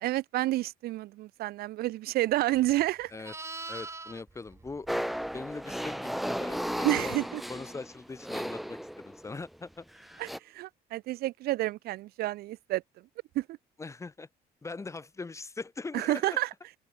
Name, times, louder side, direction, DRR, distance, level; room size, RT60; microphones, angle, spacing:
voice 1, 0.0-3.1 6.8-7.4 10.2-12.8 13.4-13.6 15.9-16.5, right 16 dB, 65° right, 0.4 m, -29 dB
Livestock farm animals working animals, 2.5-5.8 10.1-10.4, right 3 dB, 15° right, 1.2 m, -44 dB
voice 2, 3.7-4.9 5.3-9.9 13.8-14.3 14.6-16.4, left 3 dB, 15° left, 0.8 m, -41 dB
sound 1, 4.9-9.3 10.0-10.4, equal, ahead, 0.3 m, -34 dB
open air
cardioid pair, 110°, 17 cm